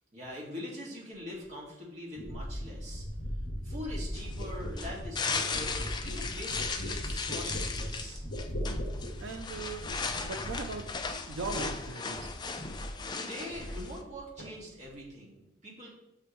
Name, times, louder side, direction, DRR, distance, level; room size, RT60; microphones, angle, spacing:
voice 1, 0.1-3.0 3.6-8.3 13.2-15.9, left 1 dB, 40° right, -4 dB, 2.0 m, -43 dB
sound 1, 1.4-1.5 2.2-11.9 12.1-13.0 13.3-14.1 14.4-14.9, equal, 55° left, 1.7 m, -38 dB
sound 2, 4.1-14.0, left 4 dB, 25° left, 0.4 m, -37 dB
voice 2, 9.2-9.9 10.2-10.9 11.3-12.3, right 4 dB, 90° right, 6 dB, 0.5 m, -39 dB
6.7 x 6.0 x 3.1 m, 0.88 s
head